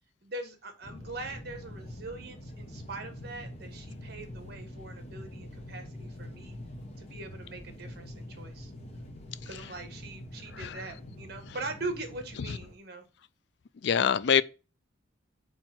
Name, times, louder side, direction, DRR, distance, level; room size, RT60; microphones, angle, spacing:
voice 1, 0.2-6.6 7.0-8.7 9.4-13.0, right 2 dB, 55° right, 1.4 m, -41 dB
sound 1, 0.8-12.7, left 1 dB, 30° left, 1.1 m, -45 dB
voice 2, 10.5-10.8 12.5-12.6 13.8-14.4, left 7 dB, 60° left, 0.4 m, -26 dB
4.6 x 4.5 x 5.9 m
head